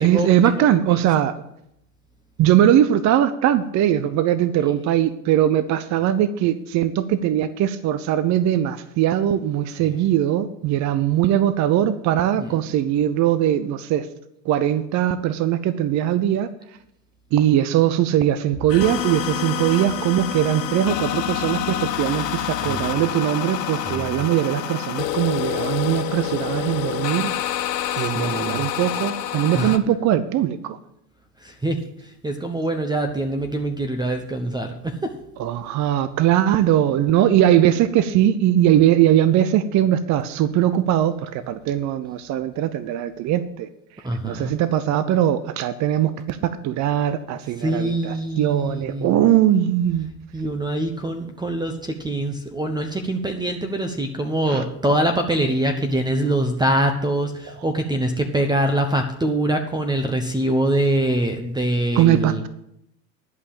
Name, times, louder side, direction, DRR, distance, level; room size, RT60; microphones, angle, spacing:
voice 1, 0.0-1.3 2.4-14.1 14.4-16.5 17.3-27.3 28.0-30.8 35.4-43.7 44.2-50.1 54.5-54.6 62.0-62.5, right 11 dB, 35° right, 13 dB, 0.8 m, -20 dB
voice 2, 0.6-1.0 9.8-10.0 12.4-12.6 22.6-22.9 23.8-24.3 28.0-28.7 29.6-29.8 31.4-35.2 44.0-44.6 47.6-49.2 50.3-62.4, right 1 dB, 10° right, 5 dB, 0.9 m, -24 dB
sound 1, 18.7-29.8, left 11 dB, 85° left, 1.1 m, -27 dB
11.0 x 5.5 x 8.7 m, 0.79 s
hypercardioid pair, 100°, 49 cm